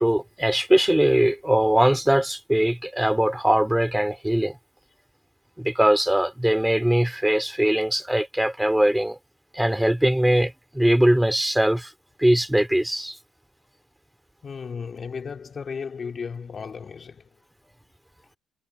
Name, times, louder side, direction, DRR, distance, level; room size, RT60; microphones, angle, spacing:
voice 1, 0.0-4.6 5.6-9.2 9.5-11.9 12.2-13.2, right 1 dB, 5° right, 4.8 m, -21 dB
voice 2, 14.4-17.3, left 6 dB, 45° left, 5.4 m, -35 dB
hypercardioid pair, 55°, 0 cm